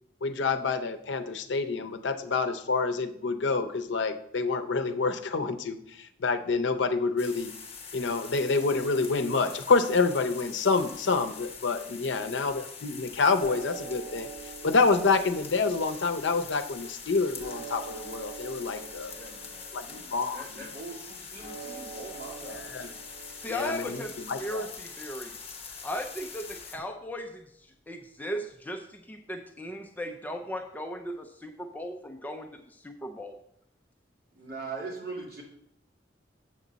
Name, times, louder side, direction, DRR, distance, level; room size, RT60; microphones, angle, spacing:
voice 1, 0.2-7.5 7.9-14.3 14.6-19.1 19.7-19.9 20.1-20.7 22.7-22.9 23.5-24.7, left 4 dB, 80° left, 9 dB, 0.6 m, -27 dB
sound 1, 7.2-26.8, left 5 dB, 35° left, 1.1 m, -44 dB
voice 2, 12.1-12.5 18.7-22.9 34.3-35.4, right 3 dB, 55° right, -3 dB, 2.4 m, -42 dB
sound 2, 13.4-27.6, right 7 dB, 25° right, 2.4 m, -47 dB
voice 3, 23.4-25.4 25.8-33.4, equal, 10° left, 4 dB, 0.4 m, -37 dB
7.5 x 7.3 x 4.0 m, 0.71 s
head